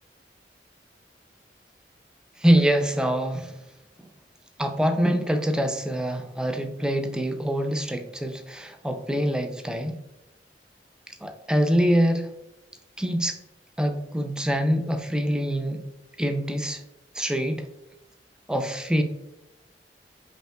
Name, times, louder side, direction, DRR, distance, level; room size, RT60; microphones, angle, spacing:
voice 1, 2.4-3.6 4.0-4.1 4.6-10.0 11.1-12.3 13.0-13.4 13.8-15.8 16.2-16.8 17.1-17.7 18.5-19.0, equal, 5° right, 6 dB, 0.3 m, -25 dB
5.4 x 2.8 x 2.2 m, 0.94 s
head